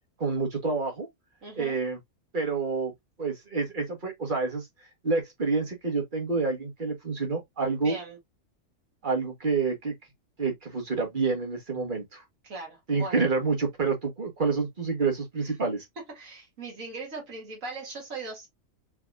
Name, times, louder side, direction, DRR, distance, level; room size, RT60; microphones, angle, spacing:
voice 1, 0.2-1.1 1.6-2.0 2.3-2.9 3.2-4.7 5.0-8.0 9.0-9.9 10.4-12.2 12.9-15.8, right 4 dB, 40° right, 1.6 m, -28 dB
voice 2, 1.4-1.8 7.8-8.2 12.4-13.3 16.2-18.5, right 3 dB, 80° right, 2.2 m, -39 dB
4.8 x 3.3 x 2.4 m
omnidirectional pair, 1.4 m